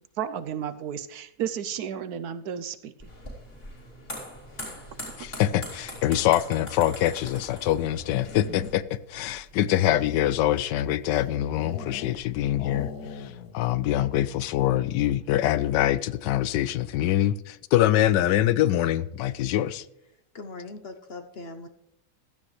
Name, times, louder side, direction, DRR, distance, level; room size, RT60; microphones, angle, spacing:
voice 1, 0.2-2.9 5.2-5.3, right 8 dB, 70° right, 1.1 m, -32 dB
sound 1, 3.0-8.7, equal, 35° left, 4.0 m, -41 dB
sound 2, 4.1-16.0, right 3 dB, 50° right, 1.9 m, -56 dB
voice 2, 5.2-19.8, left 12 dB, 85° left, 1.2 m, -24 dB
sound 3, 8.0-9.0 9.7-12.3 12.5-13.6 13.9-14.0 14.3-14.7, left 6 dB, 65° left, 1.5 m, -41 dB
voice 3, 20.1-21.7, left 3 dB, 50° left, 0.8 m, -41 dB
16.0 x 12.5 x 3.2 m
omnidirectional pair, 1.8 m